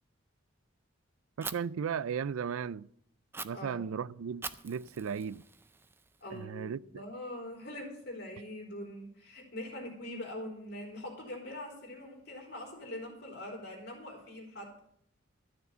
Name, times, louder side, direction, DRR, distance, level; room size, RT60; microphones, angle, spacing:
Fire, 1.4-1.5 3.3-3.4 4.4-6.4, right 4 dB, 10° right, 0.3 m, -43 dB
voice 1, 1.4-2.9 3.4-5.4 6.3-6.8, right 7 dB, 85° right, 0.4 m, -36 dB
voice 2, 6.2-14.8, left 1 dB, 55° left, 3.8 m, -43 dB
12.5 x 6.8 x 6.7 m
head